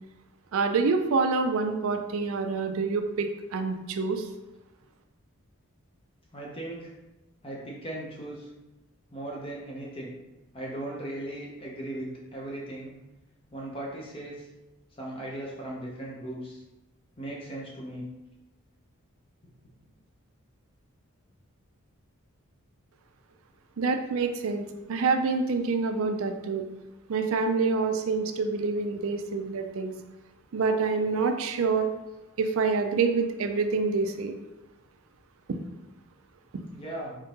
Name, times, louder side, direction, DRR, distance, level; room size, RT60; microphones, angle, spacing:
voice 1, 0.5-3.3 3.5-4.2 23.8-26.6 27.1-29.9 30.5-31.9 32.4-34.3 35.5-35.6, right 4 dB, 70° right, 6 dB, 0.4 m, -26 dB
voice 2, 6.3-6.9 7.4-8.5 9.1-10.1 10.5-12.9 13.5-14.3 15.0-16.6 17.2-18.0 36.7-37.1, right 1 dB, 25° left, -3 dB, 0.7 m, -37 dB
3.6 x 3.5 x 2.9 m, 1.0 s
head